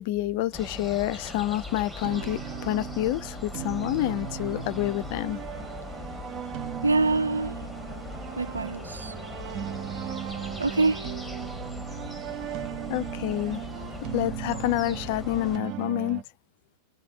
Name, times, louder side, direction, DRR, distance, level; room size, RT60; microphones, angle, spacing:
voice 1, 0.0-5.4 12.5-12.6 12.9-13.6 14.0-16.2, left 15 dB, 50° left, 0.4 m, -28 dB
sound 1, 0.5-15.6, left 2 dB, 5° left, 1.2 m, -40 dB
sound 2, 2.0-16.2, right 9 dB, 40° right, 0.6 m, -37 dB
voice 2, 6.8-7.7 8.4-9.1 10.6-11.2, right 3 dB, 80° right, 0.3 m, -25 dB
3.3 x 2.6 x 3.9 m
figure-of-eight pair, 90°, 0 cm